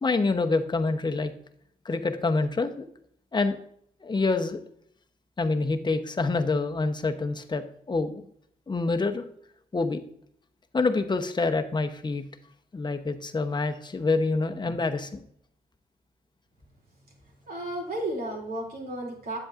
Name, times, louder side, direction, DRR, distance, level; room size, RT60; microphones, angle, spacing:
voice 1, 0.0-1.3 1.8-2.9 3.3-3.6 4.0-4.6 5.4-8.3 8.7-9.2 9.7-10.0 10.7-12.2 12.7-15.2, left 3 dB, 25° left, 7 dB, 0.8 m, -26 dB
voice 2, 17.5-19.4, right 1 dB, 65° right, 0 dB, 2.8 m, -33 dB
8.5 x 7.7 x 2.5 m, 0.68 s
cardioid pair, 65°, 17 cm